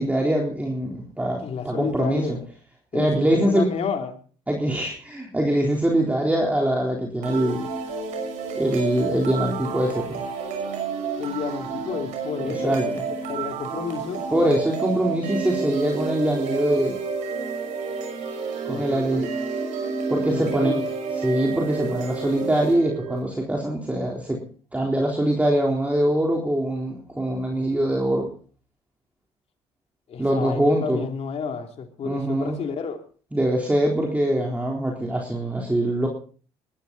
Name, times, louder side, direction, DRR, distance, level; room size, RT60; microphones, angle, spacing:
voice 1, 0.0-2.4 2.9-3.7 4.5-7.7 8.6-10.2 12.4-13.0 14.3-17.0 18.7-19.3 20.1-20.8 21.2-24.4 24.7-28.3 30.2-31.0 32.0-32.6 33.3-36.1, right 1 dB, 10° right, -1 dB, 3.8 m, -23 dB
voice 2, 1.4-2.5 2.9-4.2 11.2-14.3 18.7-19.2 20.3-21.0 30.1-33.0, left 6 dB, 55° left, 5 dB, 3.1 m, -31 dB
sound 1, 7.2-23.2, right 5 dB, 75° right, 6.0 m, -30 dB
20.5 x 13.0 x 4.2 m, 0.41 s
supercardioid pair, 75°, 13 cm